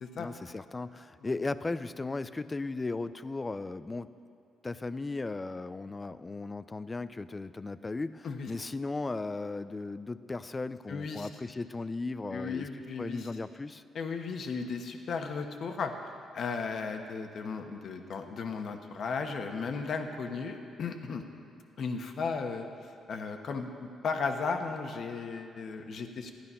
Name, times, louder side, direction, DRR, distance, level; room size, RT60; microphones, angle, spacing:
voice 1, 0.1-4.1 4.6-12.7 13.0-13.8, left 3 dB, 25° left, 14 dB, 0.4 m, -36 dB
voice 2, 10.9-11.3 12.3-13.3 13.9-21.2 21.8-22.7 23.1-26.3, left 5 dB, 60° left, 5 dB, 1.1 m, -35 dB
13.0 x 10.5 x 5.5 m, 2.5 s
cardioid pair, 90°, 0 cm